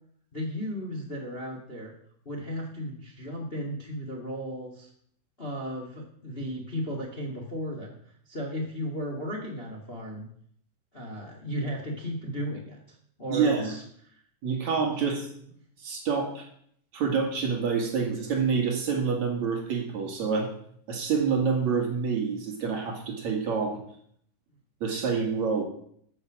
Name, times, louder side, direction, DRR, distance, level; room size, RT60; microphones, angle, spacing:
voice 1, 0.3-1.9 2.2-4.9 5.4-7.9 8.3-10.3 10.9-12.8 13.2-14.2, equal, 30° left, 0 dB, 1.0 m, -35 dB
voice 2, 13.3-13.7 14.4-15.3 15.8-16.4 16.9-20.5 20.9-23.8 24.8-25.6, right 5 dB, 55° right, 1 dB, 2.8 m, -27 dB
13.5 x 6.6 x 6.3 m, 0.65 s
omnidirectional pair, 4.5 m